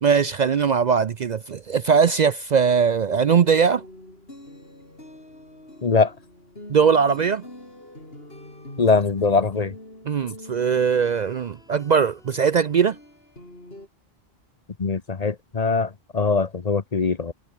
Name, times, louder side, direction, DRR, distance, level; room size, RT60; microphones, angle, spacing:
voice 1, 0.0-3.9 6.7-7.5 10.1-13.0, right 6 dB, 50° right, 0.6 m, -20 dB
sound 1, 3.1-13.9, left 1 dB, 70° left, 7.5 m, -45 dB
voice 2, 5.8-6.1 8.8-9.7 14.8-17.3, left 4 dB, 40° left, 1.0 m, -22 dB
omnidirectional pair, 1.1 m